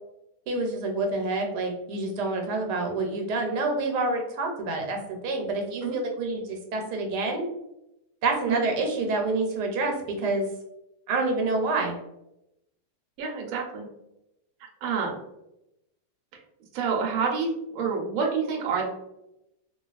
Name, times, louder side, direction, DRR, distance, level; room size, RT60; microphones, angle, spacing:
voice 1, 0.5-7.4 8.2-10.5 11.1-12.0, right 2 dB, 85° right, 2 dB, 1.2 m, -27 dB
voice 2, 13.2-13.9 14.8-15.2 16.7-18.9, right 5 dB, 65° right, 0 dB, 1.0 m, -28 dB
2.9 x 2.3 x 2.3 m, 0.87 s
omnidirectional pair, 1.8 m